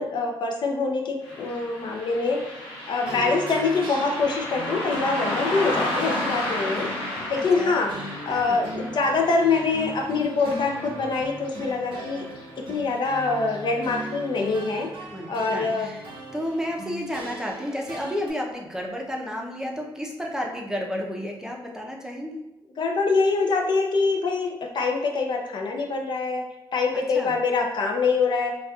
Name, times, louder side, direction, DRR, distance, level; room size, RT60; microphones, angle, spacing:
voice 1, 0.0-2.4 2.9-6.9 7.3-7.9 8.3-12.2 12.6-14.9 15.3-15.9 22.8-26.4 26.7-28.6, left 4 dB, 55° left, 2 dB, 0.5 m, -24 dB
Car passing by, 1.2-12.1 12.3-12.4 13.4-13.6 14.0-14.1 14.6-14.7, left 1 dB, 85° left, 0.9 m, -33 dB
sound 1, 3.0-18.3, right 1 dB, 75° right, 0.8 m, -39 dB
voice 2, 3.1-3.4 7.4-7.8 8.3-8.6 15.1-16.0 16.3-22.4 26.9-27.3, equal, 5° right, -1 dB, 0.5 m, -32 dB
4.1 x 2.3 x 2.3 m, 0.93 s
cardioid pair, 90°, 9 cm